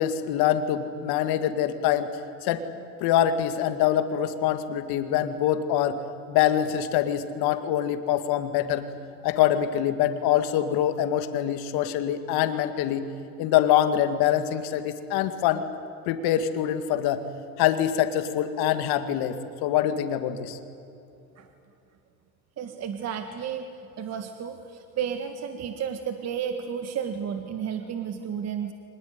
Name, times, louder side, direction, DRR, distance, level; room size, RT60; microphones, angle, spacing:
voice 1, 0.0-2.1 2.4-2.6 3.0-6.0 6.3-8.9 9.2-13.1 13.4-15.6 16.1-17.2 17.6-20.6, left 10 dB, 50° left, 9 dB, 2.1 m, -24 dB
voice 2, 22.6-23.7 24.0-28.7, right 8 dB, 35° right, 7 dB, 1.7 m, -32 dB
24.5 x 20.0 x 9.5 m, 2.8 s
supercardioid pair, 125°, 47 cm